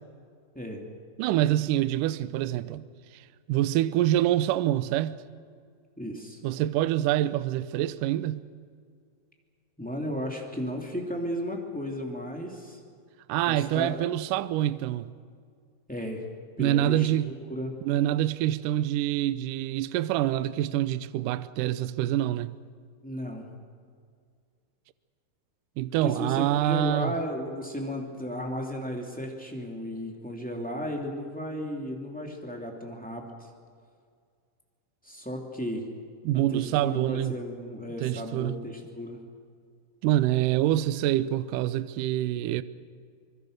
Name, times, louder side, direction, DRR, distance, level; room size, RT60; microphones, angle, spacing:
voice 1, 1.2-2.8 3.1-5.2 6.4-8.4 13.3-15.1 16.6-17.3 17.9-22.6 25.8-27.2 36.2-37.3 38.0-38.6 40.0-42.6, right 13 dB, 85° right, 1.9 m, -26 dB
voice 2, 6.0-6.4 9.8-12.8 13.5-14.0 15.9-16.2 16.6-17.8 23.0-23.5 26.0-33.5 35.0-35.9 36.5-39.2, equal, 5° left, 1.8 m, -34 dB
25.5 x 21.5 x 6.6 m
omnidirectional pair, 4.6 m